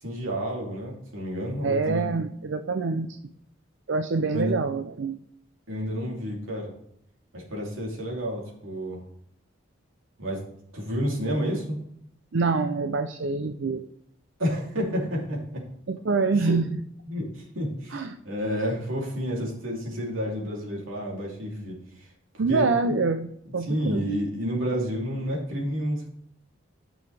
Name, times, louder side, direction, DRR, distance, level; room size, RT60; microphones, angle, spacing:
voice 1, 0.0-2.2 4.3-4.6 5.7-6.7 7.3-9.0 10.2-10.4 10.7-11.8 14.4-15.6 16.3-16.5 17.1-22.1 22.3-22.7 23.7-26.1, equal, 90° right, -2 dB, 3.0 m, -30 dB
voice 2, 1.6-3.2 3.9-5.2 12.3-13.8 15.9-16.8 17.9-18.2 22.4-24.0, right 4 dB, 70° right, 8 dB, 0.5 m, -26 dB
13.0 x 6.2 x 3.4 m, 0.73 s
head